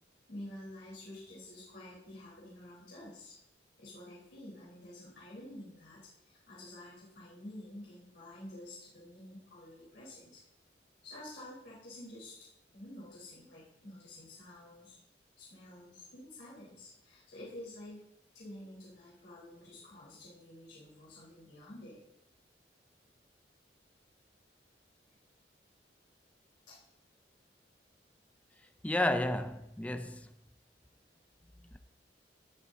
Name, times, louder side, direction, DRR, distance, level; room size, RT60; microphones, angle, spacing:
voice 1, 0.3-3.4 3.8-10.4 11.0-12.5 12.7-15.0 15.4-18.0 18.3-22.1 25.1-25.2 26.7-26.9 28.6-28.7, left 1 dB, 85° left, 4.0 m, -49 dB
voice 2, 28.8-30.3, left 1 dB, 10° left, 0.4 m, -31 dB
18.0 x 7.6 x 2.7 m
head